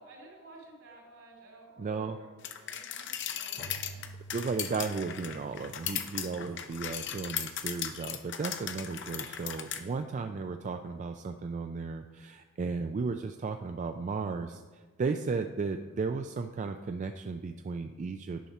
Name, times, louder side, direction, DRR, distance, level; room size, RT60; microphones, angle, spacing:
voice 1, 0.0-4.0, right 2 dB, 70° right, -1 dB, 2.7 m, -54 dB
voice 2, 1.8-2.2 4.3-14.6 15.0-18.4, right 4 dB, 35° right, 6 dB, 0.3 m, -34 dB
sound 1, 2.4-9.8, left 9 dB, 60° left, 0.6 m, -37 dB
Keyboard (musical), 3.6-8.1, right 2 dB, 40° left, 1.3 m, -51 dB
10.0 x 4.2 x 5.8 m, 1.4 s
head